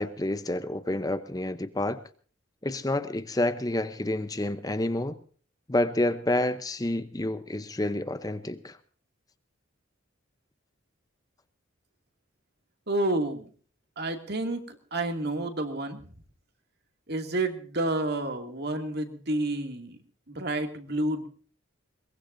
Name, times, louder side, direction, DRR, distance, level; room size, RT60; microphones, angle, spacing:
voice 1, 0.0-2.0 2.6-5.2 5.7-8.8, left 1 dB, 20° left, 11 dB, 0.7 m, -29 dB
voice 2, 12.9-13.5 14.0-16.0 17.1-20.0 20.3-21.3, right 2 dB, 55° right, 5 dB, 2.4 m, -30 dB
22.0 x 20.5 x 2.7 m, 0.42 s
head